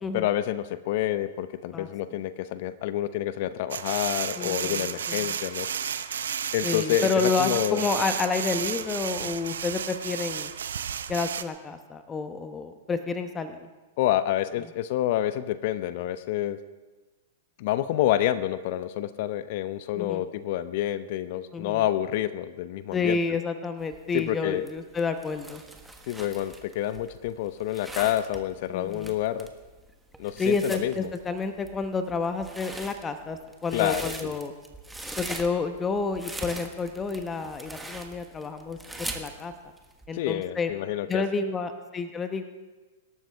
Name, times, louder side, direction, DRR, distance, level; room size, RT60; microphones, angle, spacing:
voice 1, 0.1-5.7 6.5-7.1 7.4-7.8 14.0-16.6 17.6-23.2 24.1-24.6 26.1-29.5 30.2-31.1 33.7-34.4 40.1-41.2, left 13 dB, 50° left, 13 dB, 0.8 m, -28 dB
voice 2, 1.7-2.2 4.4-5.4 6.6-10.5 11.1-13.6 19.9-20.2 21.5-21.8 22.9-25.6 28.7-29.1 30.4-34.5 35.2-39.5 40.1-40.7 41.1-42.4, left 4 dB, 20° left, 8 dB, 1.0 m, -30 dB
sound 1, 3.7-11.4, right 8 dB, 70° right, 0.8 m, -32 dB
sound 2, 23.8-40.1, right 2 dB, 5° right, 1.4 m, -41 dB
25.0 x 13.0 x 3.5 m, 1.2 s
figure-of-eight pair, 105°, 0 cm